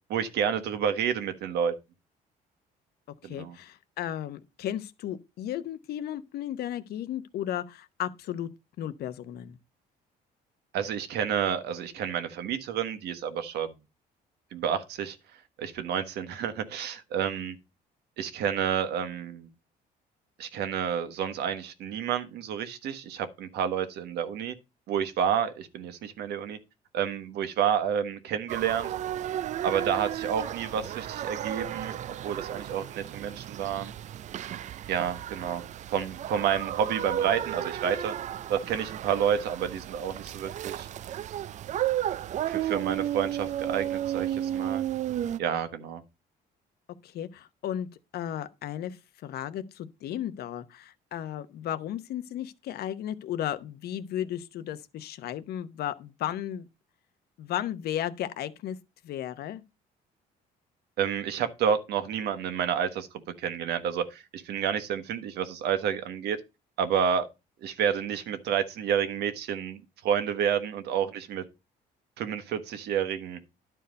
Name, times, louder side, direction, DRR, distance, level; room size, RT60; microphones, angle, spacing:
voice 1, 0.1-1.7 3.2-3.5 10.7-13.7 14.5-15.2 15.6-17.6 18.2-19.5 20.4-24.5 24.9-26.6 26.9-28.9 29.6-33.9 34.9-35.6 35.9-38.1 38.5-40.9 42.5-44.8 45.4-46.0 61.0-63.1 63.4-66.4 66.8-67.3 67.6-71.4 72.2-73.4, right 8 dB, 75° right, 1.3 m, -29 dB
voice 2, 3.2-8.5 8.8-9.6 47.0-56.7 57.4-58.8 59.0-59.6, left 11 dB, 70° left, 0.9 m, -34 dB
sound 1, 28.5-45.4, right 11 dB, 45° right, 0.4 m, -33 dB
11.0 x 4.6 x 5.2 m
cardioid pair, 110°, 17 cm